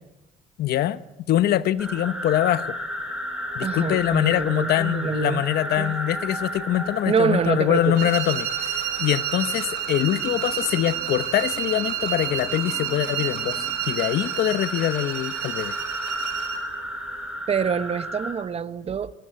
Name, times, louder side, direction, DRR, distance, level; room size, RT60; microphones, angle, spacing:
voice 1, 0.6-1.0 1.3-2.8 3.5-15.7, left 12 dB, 70° left, 1.1 m, -24 dB
sound 1, 1.8-18.3, equal, 5° right, 5.7 m, -34 dB
voice 2, 3.6-5.4 5.8-5.9 7.1-8.1 17.5-19.1, right 6 dB, 35° right, 1.2 m, -26 dB
sound 2, 7.9-16.7, right 10 dB, 85° right, 6.5 m, -30 dB
24.0 x 23.0 x 8.2 m
cardioid pair, 110°, 17 cm